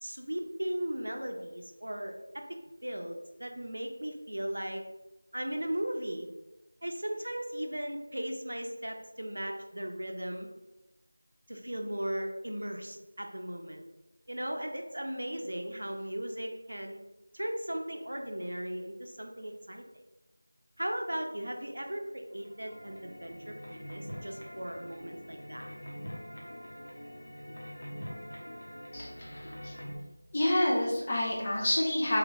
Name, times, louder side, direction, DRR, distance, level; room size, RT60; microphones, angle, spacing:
voice 1, 0.0-4.9 5.3-6.3 6.8-10.5 11.5-13.8 14.3-17.0 17.3-19.8 20.8-25.7, right 1 dB, 75° right, 4 dB, 0.5 m, -37 dB
sound 1, 22.3-30.0, equal, 75° left, 1.0 m, -44 dB
voice 2, 28.9-29.7 30.3-32.2, left 1 dB, 20° left, -4 dB, 0.4 m, -28 dB
3.2 x 2.3 x 3.0 m, 1.0 s
figure-of-eight pair, 180°, 0 cm